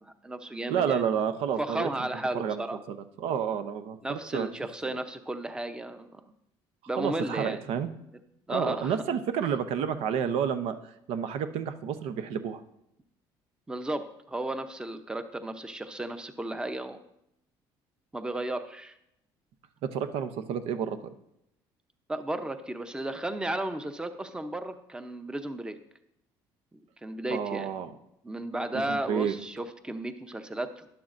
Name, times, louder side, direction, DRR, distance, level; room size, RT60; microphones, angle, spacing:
voice 1, 0.0-1.1 1.6-2.8 4.0-6.2 6.9-7.6 8.5-9.0 13.7-17.0 18.1-18.9 22.1-25.8 27.0-27.7 28.2-30.7, right 1 dB, 10° right, 9 dB, 0.7 m, -34 dB
voice 2, 0.7-2.1 2.3-4.5 4.8-5.0 7.0-7.9 8.5-10.8 11.1-12.6 19.8-21.0 27.3-27.9 28.9-29.4, right 8 dB, 75° right, 9 dB, 0.8 m, -30 dB
11.5 x 11.0 x 2.6 m, 0.80 s
cardioid pair, 95°, 10 cm